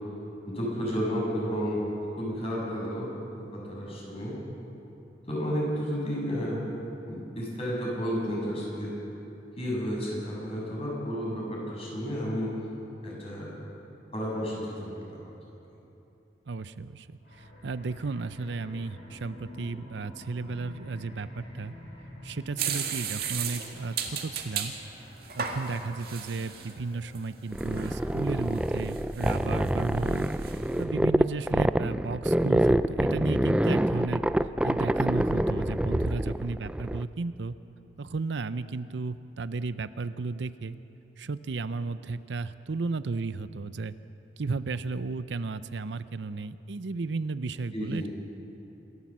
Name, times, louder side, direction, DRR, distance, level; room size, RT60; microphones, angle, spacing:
voice 1, 0.5-4.4 5.3-6.7 7.1-8.9 9.6-12.5 13.0-13.5 14.1-15.2 47.7-48.1, equal, 35° left, -3 dB, 6.7 m, -32 dB
voice 2, 16.5-17.1 17.3-21.7 22.2-24.7 25.4-30.3 30.8-34.2 34.6-37.5 38.0-40.8 41.2-43.9 44.4-48.1, right 3 dB, 80° right, 13 dB, 0.6 m, -34 dB
sound 1, 17.2-27.8, left 1 dB, 75° left, 6.6 m, -49 dB
sound 2, 22.6-24.7 25.2-26.7 27.1-27.2 27.6-28.0 28.5-29.7 30.0-30.6, right 7 dB, 55° right, 2.0 m, -34 dB
sound 3, 27.5-37.0, right 1 dB, 5° right, 0.3 m, -26 dB
26.5 x 13.5 x 7.4 m, 2.9 s
head